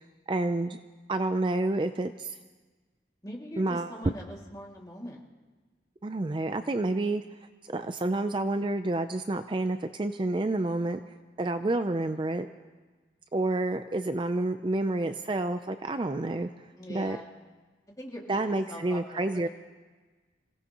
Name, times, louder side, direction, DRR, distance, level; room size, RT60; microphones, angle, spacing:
voice 1, 0.3-0.8 1.1-2.4 3.6-3.9 6.0-7.2 7.6-11.0 11.4-12.5 13.3-16.5 16.9-17.2 18.3-19.5, right 2 dB, 30° right, 9 dB, 0.4 m, -29 dB
voice 2, 3.2-5.2 16.8-17.3 18.0-19.5, equal, 20° left, -2 dB, 2.2 m, -42 dB
27.5 x 17.0 x 2.9 m, 1.3 s
head